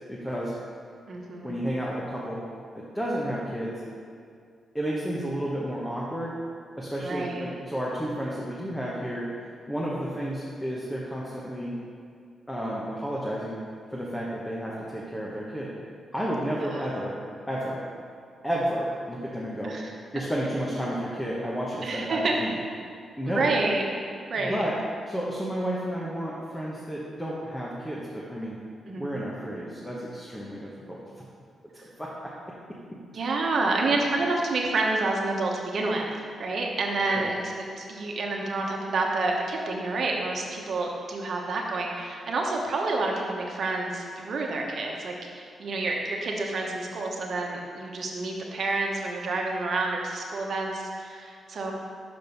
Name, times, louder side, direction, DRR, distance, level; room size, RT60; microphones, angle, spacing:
voice 1, 0.1-0.5 1.4-2.4 2.7-3.8 4.7-6.3 6.8-9.3 9.7-11.8 12.5-13.6 13.9-15.7 16.1-17.2 17.5-17.8 18.4-19.8 20.1-22.6 23.2-23.6 24.4-24.7 25.0-28.6 28.9-31.0 32.0-32.3 37.2-37.3, equal, 10° left, -5 dB, 1.1 m, -31 dB
voice 2, 1.1-1.6 7.0-7.5 16.6-16.8 19.6-19.9 21.8-22.4 23.3-23.8 24.3-24.6 28.9-29.0 33.1-36.1 36.4-51.7, right 3 dB, 60° right, -1 dB, 1.1 m, -29 dB
6.1 x 5.3 x 5.3 m, 2.3 s
cardioid pair, 85°, 0 cm